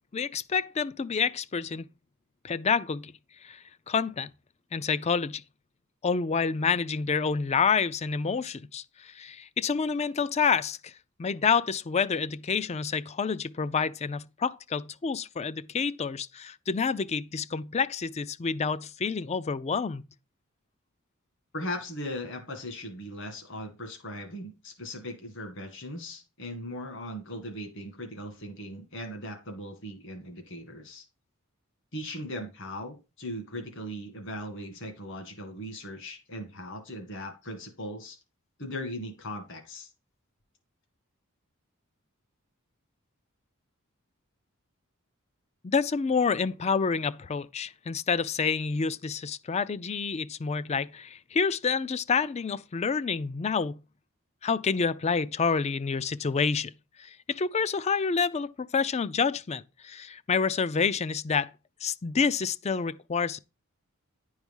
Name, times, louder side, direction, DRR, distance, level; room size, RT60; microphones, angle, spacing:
voice 1, 0.1-1.9 2.4-3.1 3.4-4.3 4.7-5.4 6.0-10.9 11.2-20.0 45.6-53.8 54.4-56.7 57.0-61.5 61.8-63.4, left 5 dB, 30° left, 0.4 m, -28 dB
voice 2, 21.5-31.0 31.9-38.2 38.6-39.9, left 1 dB, 60° left, 2.1 m, -38 dB
10.5 x 4.8 x 5.4 m
head